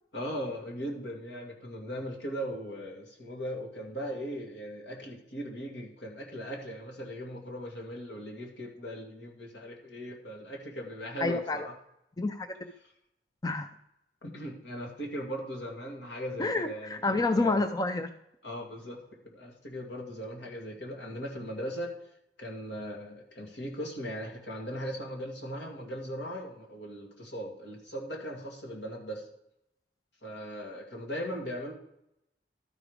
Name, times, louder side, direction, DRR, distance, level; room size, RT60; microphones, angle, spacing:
voice 1, 0.1-11.8 14.2-17.6 18.4-21.9 22.4-29.3 30.2-31.7, equal, 80° left, 0 dB, 2.1 m, -39 dB
voice 2, 11.2-11.6 12.2-12.7 13.4-13.7 16.4-18.1, left 3 dB, 20° left, 8 dB, 0.4 m, -28 dB
12.0 x 4.8 x 5.1 m, 0.80 s
head